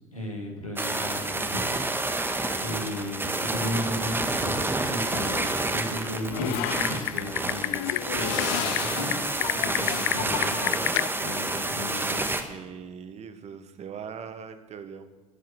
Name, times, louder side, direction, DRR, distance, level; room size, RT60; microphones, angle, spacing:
voice 1, 0.1-1.8 2.2-2.3 2.6-10.9 11.2-12.3, left 1 dB, 90° left, 0 dB, 2.4 m, -35 dB
sound 1, 0.8-12.4, right 2 dB, 10° right, 1.9 m, -29 dB
Typing, 6.3-11.1, left 19 dB, 60° left, 0.4 m, -30 dB
voice 2, 12.0-15.1, right 7 dB, 40° right, 9 dB, 1.6 m, -41 dB
18.0 x 9.2 x 7.9 m, 1.2 s
figure-of-eight pair, 55°, 17 cm